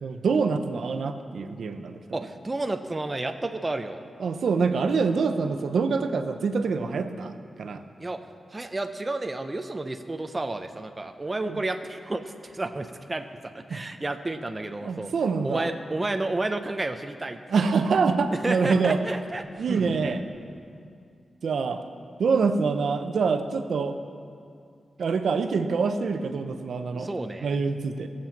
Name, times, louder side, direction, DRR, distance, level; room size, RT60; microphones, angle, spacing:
voice 1, 0.0-2.2 4.2-7.8 11.4-11.6 13.7-13.8 14.8-15.7 17.5-19.0 19.6-20.2 21.4-21.8 22.2-23.9 25.0-27.1 27.4-28.1, right 5 dB, 75° right, 8 dB, 0.7 m, -25 dB
voice 2, 2.1-4.0 8.0-8.2 8.5-15.1 15.4-17.4 18.3-19.4 26.9-27.6, right 2 dB, 20° right, 6 dB, 0.6 m, -31 dB
sound 1, 19.0-20.7, right 3 dB, 50° right, 1.2 m, -39 dB
17.0 x 7.6 x 7.2 m, 2.3 s
wide cardioid pair, 145°, 0 cm